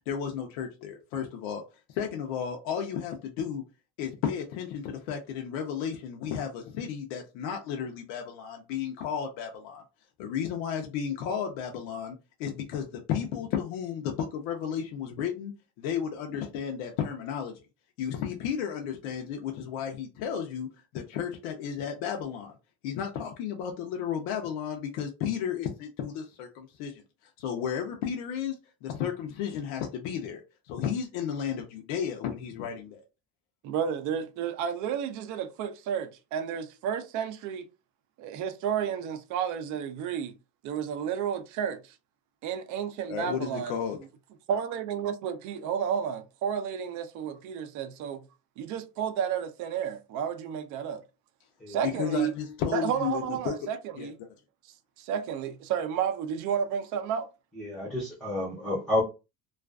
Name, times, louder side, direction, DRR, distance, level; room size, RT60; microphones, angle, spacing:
voice 1, 0.1-1.6 1.9-3.6 4.0-9.8 10.2-15.5 15.8-17.5 18.0-22.6 22.8-33.0 43.1-44.0 51.8-53.6 54.0-54.1, left 8 dB, 85° left, 0.6 m, -33 dB
voice 2, 33.6-37.7 38.2-40.3 40.6-42.0 42.4-43.8 44.5-48.2 48.6-51.0 51.7-52.3 52.7-54.1 55.0-57.3, right 8 dB, 55° right, 0.5 m, -31 dB
voice 3, 57.6-59.0, left 1 dB, ahead, 0.6 m, -30 dB
2.4 x 2.3 x 2.3 m
cardioid pair, 140°, 35 cm